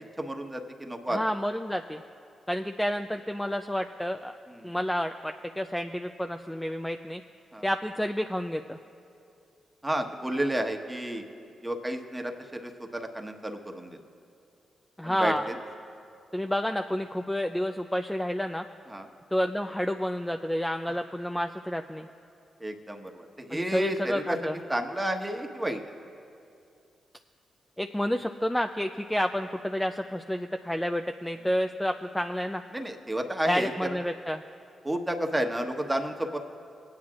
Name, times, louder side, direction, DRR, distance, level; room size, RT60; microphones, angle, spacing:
voice 1, 0.2-1.2 4.5-4.7 7.5-7.7 9.8-11.2 11.6-14.0 15.0-15.6 18.9-19.1 22.6-24.4 24.7-25.8 32.7-34.0 34.8-36.4, right 1 dB, 10° right, 3 dB, 1.2 m, -31 dB
voice 2, 1.1-2.0 2.5-4.3 4.6-7.2 7.6-8.8 15.0-15.4 16.3-18.6 19.3-22.1 23.5-24.6 27.8-32.6 33.5-34.4, equal, 10° left, 6 dB, 0.4 m, -30 dB
20.5 x 9.4 x 2.5 m, 2.5 s
supercardioid pair, 45°, 0 cm